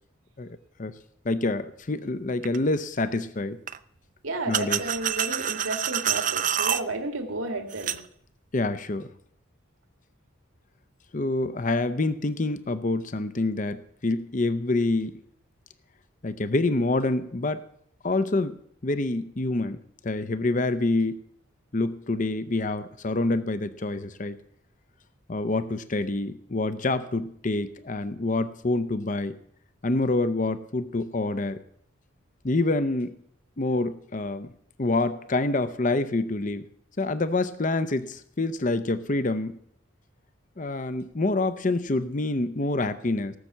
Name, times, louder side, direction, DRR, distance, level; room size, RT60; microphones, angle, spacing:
voice 1, 0.4-0.9 1.2-3.6 4.5-4.8 8.5-9.1 11.1-13.8 14.0-15.1 16.2-17.6 18.0-18.6 18.8-21.2 21.7-24.4 25.3-29.3 29.8-31.6 32.4-33.2 33.6-34.5 34.8-36.6 37.0-39.6 40.6-43.4, left 2 dB, 35° left, 12 dB, 0.6 m, -27 dB
sound 1, 2.4-2.6 3.7-3.8 4.5-6.8 7.7-8.0, right 9 dB, 40° right, 0.5 m, -27 dB
voice 2, 4.2-7.9, right 2 dB, 80° right, 5 dB, 2.4 m, -32 dB
18.0 x 6.7 x 7.4 m, 0.68 s
head